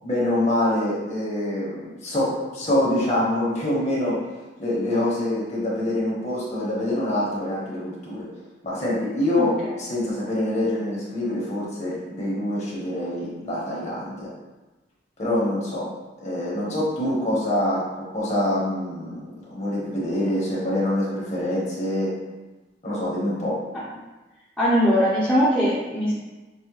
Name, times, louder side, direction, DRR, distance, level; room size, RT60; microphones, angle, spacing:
voice 1, 0.0-4.1 4.6-8.2 8.6-9.5 9.8-14.3 15.2-15.8 16.2-22.1 22.8-23.5, left 1 dB, 40° left, -7 dB, 1.4 m, -25 dB
voice 2, 24.6-26.1, equal, 5° left, -10 dB, 0.7 m, -20 dB
6.0 x 2.2 x 3.1 m, 1.1 s
head